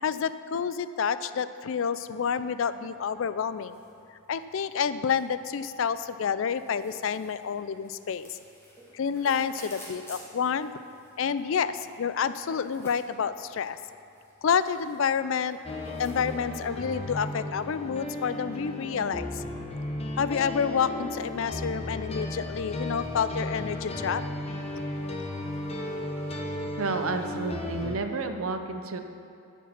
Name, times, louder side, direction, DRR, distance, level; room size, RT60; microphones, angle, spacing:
voice 1, 0.0-3.8 4.3-8.4 8.9-10.7 11.2-13.8 14.4-15.6 16.0-19.4 20.2-24.2, left 6 dB, 60° left, 14 dB, 0.4 m, -29 dB
sound 1, 1.8-16.5, equal, 10° left, 2.0 m, -54 dB
sound 2, 15.6-28.0, left 1 dB, 25° left, 0.9 m, -35 dB
voice 2, 26.8-29.0, right 3 dB, 70° right, 7 dB, 0.7 m, -31 dB
11.0 x 7.3 x 6.0 m, 2.6 s
head